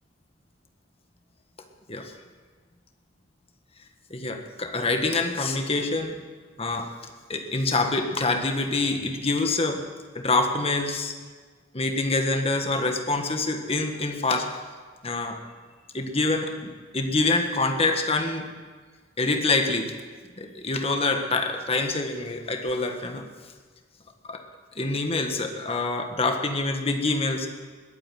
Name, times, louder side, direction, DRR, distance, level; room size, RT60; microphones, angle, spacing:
voice 1, 4.1-6.2 6.6-6.9 7.3-9.8 10.1-11.2 11.7-14.5 15.0-15.4 15.9-16.5 16.9-18.5 19.2-19.9 20.4-23.2 24.2-24.4 24.7-27.5, left 3 dB, 30° left, 5 dB, 1.5 m, -26 dB
21.0 x 9.0 x 7.7 m, 1.5 s
head